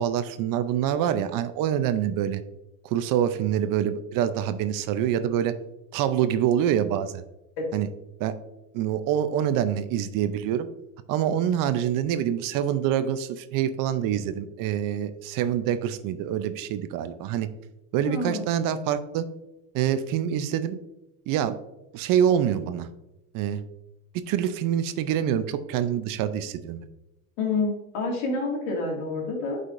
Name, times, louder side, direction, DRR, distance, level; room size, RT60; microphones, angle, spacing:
voice 1, 0.0-2.4 2.8-5.5 5.9-7.2 7.7-7.9 8.2-8.3 8.7-10.7 11.1-17.5 17.9-19.2 19.7-20.8 21.3-21.6 21.9-22.9 23.3-23.6 24.1-26.9, right 10 dB, 55° right, 11 dB, 0.6 m, -26 dB
voice 2, 18.0-18.4 27.4-29.6, left 3 dB, 65° left, 0 dB, 2.2 m, -28 dB
8.2 x 5.0 x 2.5 m, 0.92 s
supercardioid pair, 115°, 41 cm